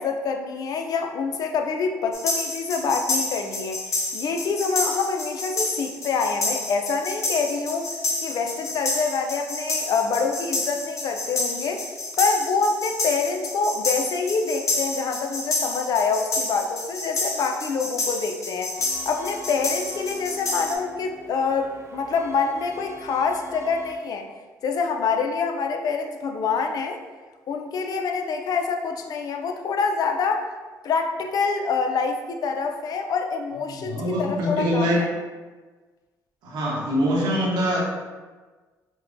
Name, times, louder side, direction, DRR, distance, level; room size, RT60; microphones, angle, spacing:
voice 1, 0.0-7.9 8.2-11.9 12.2-18.7 19.1-24.3 24.6-27.0 27.5-30.5 30.8-35.1, left 5 dB, 60° left, 4 dB, 0.5 m, -26 dB
sound 1, 2.1-20.7, left 2 dB, 45° left, 1.0 m, -29 dB
sound 2, 18.8-24.0, right 1 dB, 35° right, 0.5 m, -43 dB
voice 2, 33.7-35.0 36.4-37.9, equal, 75° right, -4 dB, 1.1 m, -24 dB
5.4 x 2.2 x 2.6 m, 1.3 s
supercardioid pair, 75°, 7 cm